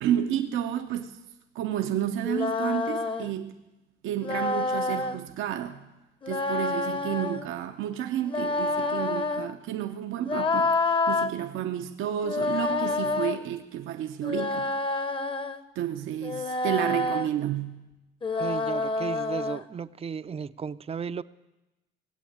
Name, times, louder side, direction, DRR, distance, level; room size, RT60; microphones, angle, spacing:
voice 1, 0.0-1.2 1.5-3.5 4.0-5.8 6.3-14.7 15.8-17.8, right 10 dB, 85° right, 0.7 m, -31 dB
sound 1, 2.2-3.3 4.2-5.2 6.2-7.4 8.2-9.5 10.2-11.3 12.2-13.4 14.2-15.6 16.2-17.3 18.2-19.6, left 3 dB, 25° left, 0.8 m, -28 dB
voice 2, 18.4-21.2, right 6 dB, 30° right, 0.4 m, -35 dB
18.5 x 8.0 x 8.6 m
cardioid pair, 90°, 20 cm